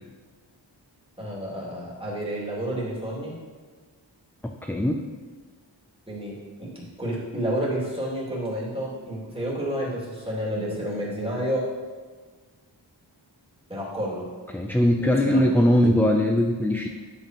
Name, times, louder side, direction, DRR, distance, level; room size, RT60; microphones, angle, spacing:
voice 1, 1.2-3.4 6.1-11.6 13.7-14.3 15.0-15.6, right 1 dB, 10° right, -6 dB, 2.7 m, -30 dB
voice 2, 4.4-5.0 14.5-16.9, left 1 dB, 5° left, 3 dB, 0.4 m, -21 dB
9.3 x 7.1 x 3.1 m, 1.5 s
wide cardioid pair, 60°, 45 cm